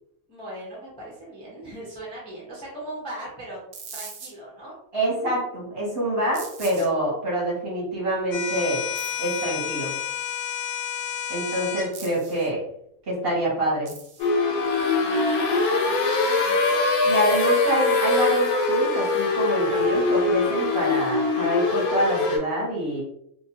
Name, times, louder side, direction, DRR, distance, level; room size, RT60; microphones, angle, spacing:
voice 1, 0.3-3.6 3.9-4.7 6.8-7.0 14.9-17.1 19.9-20.4, right 1 dB, 5° left, -6 dB, 0.6 m, -40 dB
sound 1, 3.7-4.3 6.3-6.9 9.0-9.4 11.9-12.5 13.9-14.3, right 5 dB, 75° right, 0.9 m, -41 dB
voice 2, 4.9-8.8 9.2-9.9 11.3-12.6 13.1-13.9 17.0-23.0, right 1 dB, 50° right, -5 dB, 1.0 m, -26 dB
sound 2, 8.3-11.9, left 9 dB, 65° left, 0.7 m, -30 dB
sound 3, 14.2-22.4, left 3 dB, 90° left, 1.1 m, -22 dB
2.6 x 2.2 x 2.8 m, 0.75 s
omnidirectional pair, 1.5 m